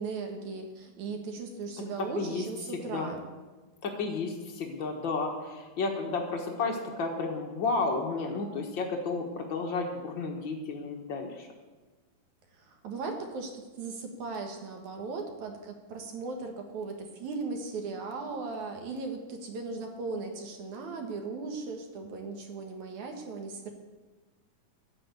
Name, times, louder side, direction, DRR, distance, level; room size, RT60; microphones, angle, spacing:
voice 1, 0.0-3.2 12.6-23.7, right 4 dB, 55° right, 4 dB, 2.7 m, -37 dB
voice 2, 3.8-11.5, left 4 dB, 85° left, 1 dB, 1.0 m, -32 dB
12.0 x 8.9 x 8.2 m, 1.3 s
omnidirectional pair, 4.5 m